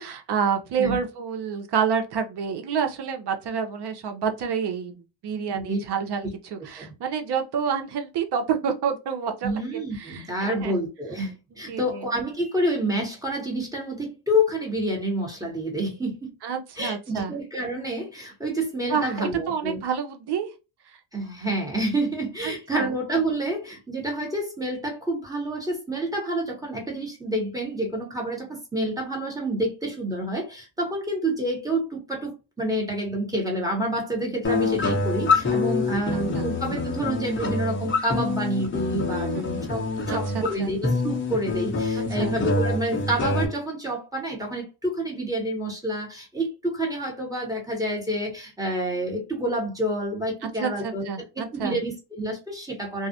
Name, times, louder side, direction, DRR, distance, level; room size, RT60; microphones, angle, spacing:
voice 1, 0.0-10.7 11.7-12.1 16.4-17.3 18.9-20.5 22.4-22.9 36.1-36.5 39.1-39.5 40.1-40.7 42.0-42.3 50.4-51.8, right 7 dB, 60° right, 0.7 m, -29 dB
voice 2, 5.5-5.8 6.8-6.9 9.4-16.3 16.8-19.8 21.1-51.1 51.4-53.1, right 1 dB, 10° right, 1.0 m, -28 dB
sound 1, 34.4-43.4, left 3 dB, 25° left, 0.7 m, -26 dB
2.4 x 2.0 x 2.6 m
cardioid pair, 110°, 46 cm